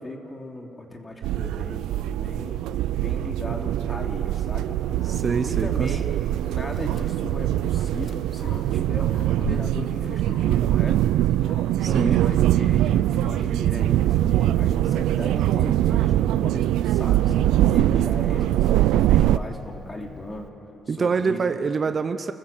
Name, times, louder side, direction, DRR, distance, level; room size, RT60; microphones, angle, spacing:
voice 1, 0.0-2.7 3.0-4.8 5.5-6.1 6.4-11.0 11.7-17.3 17.7-20.5 20.9-21.5, left 1 dB, 25° left, 2 dB, 3.1 m, -37 dB
sound 1, 1.2-19.4, right 13 dB, 90° right, 0.4 m, -22 dB
Dog, 4.8-20.5, left 5 dB, 50° left, 1.0 m, -44 dB
voice 2, 5.1-5.9 11.8-12.2 20.9-22.3, right 5 dB, 40° right, 9 dB, 0.9 m, -25 dB
29.0 x 15.5 x 7.3 m, 2.9 s
cardioid pair, 90°, 0 cm